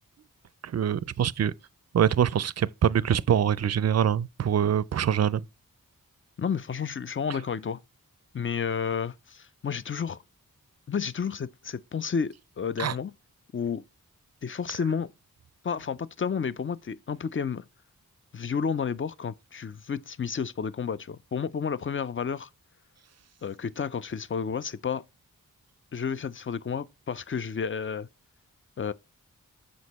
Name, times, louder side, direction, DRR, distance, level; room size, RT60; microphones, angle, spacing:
voice 1, 0.7-1.5 1.9-5.4 12.8-12.9, right 9 dB, 50° right, 0.4 m, -24 dB
voice 2, 6.4-7.8 8.3-10.2 10.9-13.1 13.5-13.8 14.4-15.1 15.6-17.6 18.3-22.5 23.4-25.0 25.9-28.1 28.8-28.9, left 6 dB, 35° left, 0.5 m, -31 dB
6.3 x 5.2 x 4.1 m
cardioid pair, 50°, 35 cm